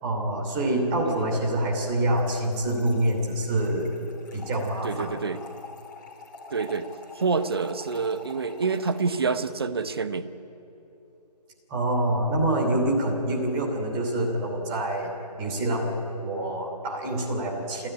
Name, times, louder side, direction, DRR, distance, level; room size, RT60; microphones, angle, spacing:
voice 1, 0.0-3.9 4.3-5.1 11.7-15.1 15.4-17.9, right 1 dB, 15° right, -2 dB, 3.0 m, -26 dB
Trickle dribble / Fill (with liquid), 2.2-9.5, left 3 dB, 30° left, 4.4 m, -46 dB
voice 2, 4.8-5.4 6.5-6.9 7.1-10.3, right 4 dB, 35° right, 11 dB, 0.9 m, -27 dB
29.0 x 12.5 x 9.8 m, 2.9 s
figure-of-eight pair, 155°, 21 cm